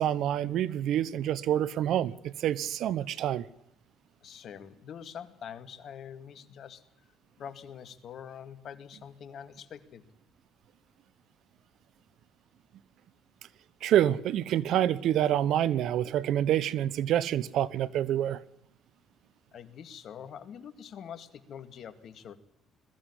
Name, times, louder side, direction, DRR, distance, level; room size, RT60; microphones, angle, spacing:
voice 1, 0.0-3.5 13.8-18.4, right 11 dB, 70° right, 1.0 m, -27 dB
voice 2, 4.2-6.8 7.4-10.0 19.5-22.4, left 8 dB, 65° left, 2.1 m, -45 dB
21.5 x 14.5 x 10.0 m
supercardioid pair, 60°, 0 cm